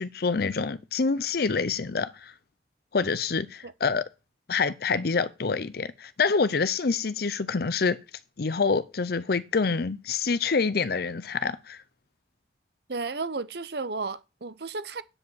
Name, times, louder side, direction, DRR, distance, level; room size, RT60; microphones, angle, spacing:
voice 1, 0.0-2.3 2.9-4.1 4.5-8.0 8.4-11.8, left 4 dB, 55° left, 0.6 m, -26 dB
voice 2, 12.9-15.0, right 3 dB, 60° right, 0.8 m, -33 dB
9.6 x 5.3 x 8.0 m
head